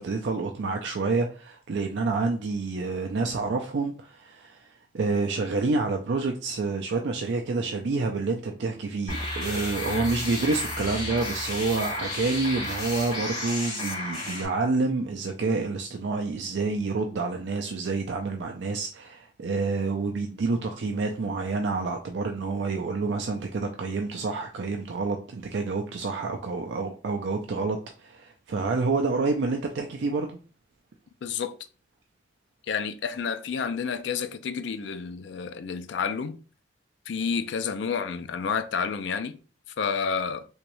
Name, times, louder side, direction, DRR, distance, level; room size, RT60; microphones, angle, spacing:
voice 1, 0.0-30.4, right 3 dB, 65° right, 0.4 m, -28 dB
sound 1, 9.1-14.5, left 2 dB, 45° left, 1.9 m, -32 dB
voice 2, 31.2-31.6 32.7-36.4 37.1-39.4 39.8-40.5, left 6 dB, 65° left, 0.4 m, -30 dB
3.5 x 3.0 x 3.0 m
head